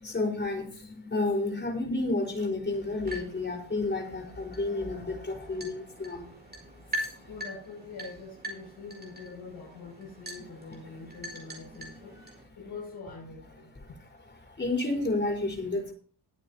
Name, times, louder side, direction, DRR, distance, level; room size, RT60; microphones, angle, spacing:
voice 1, 0.0-6.3 14.6-15.9, left 2 dB, 25° left, 5 dB, 4.4 m, -30 dB
sound 1, 2.7-12.4, equal, 25° right, 4.7 m, -43 dB
voice 2, 7.3-12.2 12.6-13.7, left 4 dB, 65° left, -4 dB, 6.3 m, -44 dB
21.0 x 9.0 x 2.8 m, 0.41 s
cardioid pair, 90°, 42 cm